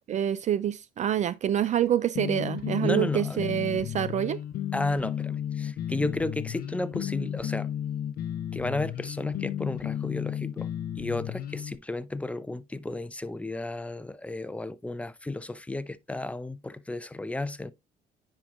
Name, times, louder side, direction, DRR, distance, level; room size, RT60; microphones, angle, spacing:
voice 1, 0.1-4.4, right 10 dB, 45° right, 0.4 m, -26 dB
sound 1, 2.2-11.8, left 10 dB, 60° left, 0.6 m, -33 dB
voice 2, 2.8-3.5 4.7-7.7 8.5-10.7 11.0-17.7, left 2 dB, 10° left, 0.5 m, -33 dB
9.7 x 4.5 x 2.5 m
cardioid pair, 110°, 17 cm